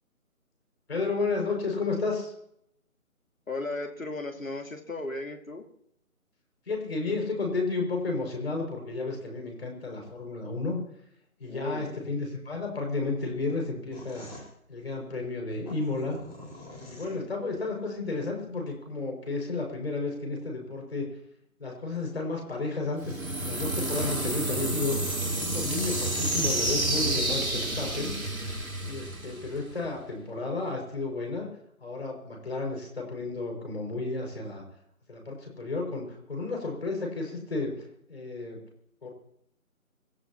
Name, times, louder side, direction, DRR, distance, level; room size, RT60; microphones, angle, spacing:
voice 1, 0.9-2.3 6.7-10.8 11.4-14.3 14.7-16.2 16.8-21.1 21.6-28.1 28.8-31.5 31.8-34.6 35.1-37.7 38.1-38.6 39.0-39.1, left 3 dB, 45° left, 1 dB, 6.3 m, -32 dB
voice 2, 3.5-5.6 11.5-12.0 17.0-17.3, left 2 dB, 65° left, 5 dB, 2.6 m, -36 dB
sound 1, 13.9-17.6, left 2 dB, ahead, 1.1 m, -47 dB
sound 2, 23.0-29.9, right 1 dB, 70° right, 3.3 m, -30 dB
26.5 x 13.5 x 3.0 m, 0.72 s
figure-of-eight pair, 155°, 43 cm